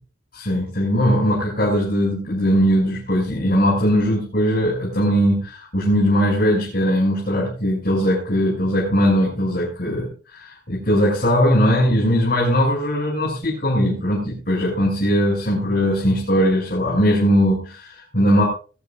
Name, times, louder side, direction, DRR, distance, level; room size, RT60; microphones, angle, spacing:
voice 1, 0.3-18.4, equal, 50° left, -5 dB, 7.2 m, -19 dB
23.5 x 12.0 x 2.6 m, 0.37 s
head